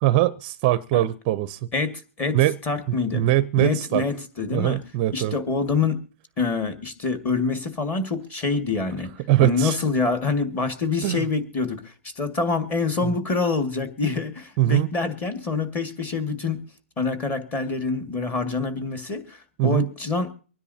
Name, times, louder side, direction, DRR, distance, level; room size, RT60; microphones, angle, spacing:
voice 1, 0.0-1.6 2.3-2.6 3.1-4.0 4.5-5.4 9.3-9.8 11.0-11.3 13.0-13.2 14.6-14.9 19.6-19.9, right 15 dB, 30° right, 0.6 m, -21 dB
voice 2, 1.7-3.3 3.6-4.8 5.1-6.0 6.4-9.1 9.4-16.6 17.0-20.3, left 4 dB, 20° left, 1.9 m, -26 dB
25.0 x 10.0 x 2.8 m
hypercardioid pair, 150°, 7 cm